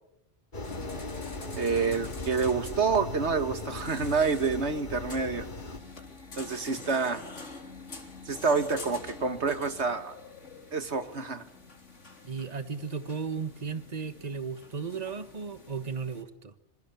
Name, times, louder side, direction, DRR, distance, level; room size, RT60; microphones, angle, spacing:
sound 1, 0.5-5.8, left 2 dB, 40° left, 2.1 m, -39 dB
sound 2, 0.6-16.2, left 3 dB, 85° left, 4.0 m, -46 dB
voice 1, 1.6-5.5 6.3-7.2 8.3-10.1 10.7-11.5, right 5 dB, 70° right, 10 dB, 2.2 m, -28 dB
voice 2, 12.2-16.5, right 5 dB, 35° right, 11 dB, 1.5 m, -35 dB
27.0 x 23.5 x 8.6 m, 0.80 s
omnidirectional pair, 1.2 m